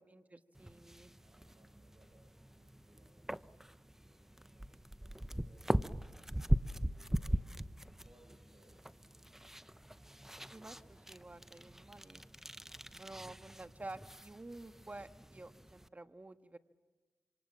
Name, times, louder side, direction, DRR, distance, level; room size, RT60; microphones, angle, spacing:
voice 1, 0.0-1.1 10.5-12.2 13.0-16.6, right 2 dB, 30° right, 9 dB, 1.4 m, -51 dB
sound 1, 0.5-15.9, right 1 dB, 5° right, 0.8 m, -41 dB
voice 2, 1.2-5.8 6.1-9.9 12.1-12.2, right 1 dB, 60° right, 1 dB, 6.9 m, -70 dB
26.5 x 25.5 x 7.5 m, 1.3 s
cardioid pair, 45°, 5 cm